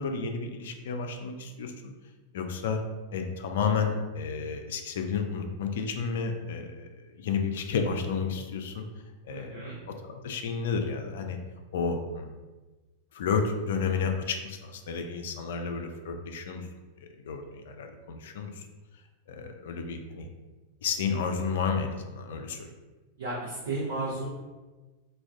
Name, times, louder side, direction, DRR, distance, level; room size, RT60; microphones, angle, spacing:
voice 1, 0.0-1.9 2.3-2.8 3.1-6.9 7.2-8.8 9.2-11.4 11.7-12.4 13.1-16.7 17.0-18.7 19.3-20.3 20.8-22.7, left 5 dB, 60° left, 5 dB, 0.3 m, -31 dB
voice 2, 9.3-9.8 23.2-24.3, right 2 dB, 60° right, -8 dB, 0.7 m, -33 dB
2.3 x 2.2 x 3.3 m, 1.2 s
figure-of-eight pair, 90°, 0 cm